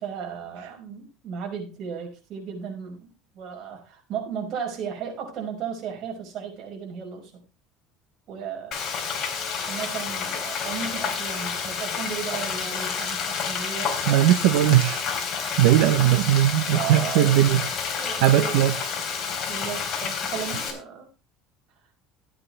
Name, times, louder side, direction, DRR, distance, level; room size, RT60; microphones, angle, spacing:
voice 1, 0.0-7.4 8.3-8.8 9.7-14.3 15.6-15.9 16.7-17.4 18.0-18.6 19.5-21.1, right 7 dB, 45° right, 1 dB, 5.7 m, -35 dB
Frying (food), 8.7-20.7, left 6 dB, 40° left, 3.6 m, -29 dB
voice 2, 14.1-15.0 15.6-17.6 18.2-18.7, right 13 dB, 85° right, 8 dB, 0.9 m, -19 dB
15.0 x 9.6 x 3.4 m, 0.30 s
cardioid pair, 150°, 0 cm